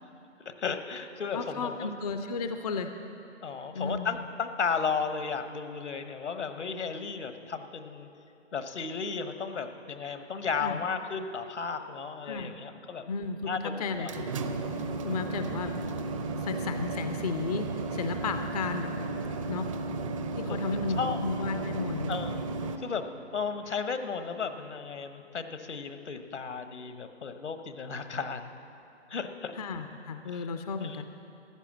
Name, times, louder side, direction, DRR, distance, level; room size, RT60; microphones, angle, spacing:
voice 1, 0.6-1.9 3.4-8.1 8.5-13.0 13.5-14.1 20.5-20.7 21.0-21.2 22.1-22.5 22.8-23.1 23.3-28.5 29.1-29.5 30.3-30.4 30.8-31.0, left 5 dB, 70° left, 9 dB, 1.2 m, -34 dB
voice 2, 1.3-2.9 3.7-4.2 10.6-10.8 12.3-12.5 13.1-14.3 14.7-15.7 16.3-18.9 19.5-19.7 20.4-22.2 29.5-31.0, left 4 dB, 35° left, 7 dB, 0.5 m, -34 dB
sound 1, 13.9-22.8, right 3 dB, 30° right, 0.6 m, -34 dB
14.5 x 10.0 x 7.4 m, 2.9 s
figure-of-eight pair, 140°, 36 cm